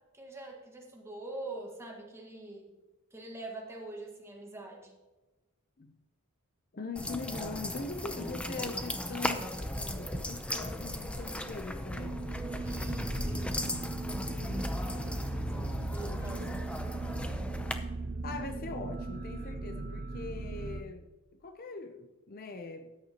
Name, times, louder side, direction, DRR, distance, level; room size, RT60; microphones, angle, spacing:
voice 1, 0.0-2.8 3.1-5.0 12.6-13.8 15.5-16.8, right 2 dB, 10° right, 0 dB, 1.7 m, -44 dB
voice 2, 6.7-12.4 15.5-16.6 18.2-21.1 21.4-22.9, left 3 dB, 40° left, 7 dB, 0.7 m, -42 dB
sound 1, 7.0-17.7, left 1 dB, 5° left, 0.6 m, -36 dB
sound 2, 11.9-20.8, right 3 dB, 40° right, 0.6 m, -39 dB
14.0 x 9.8 x 3.0 m, 1.2 s
head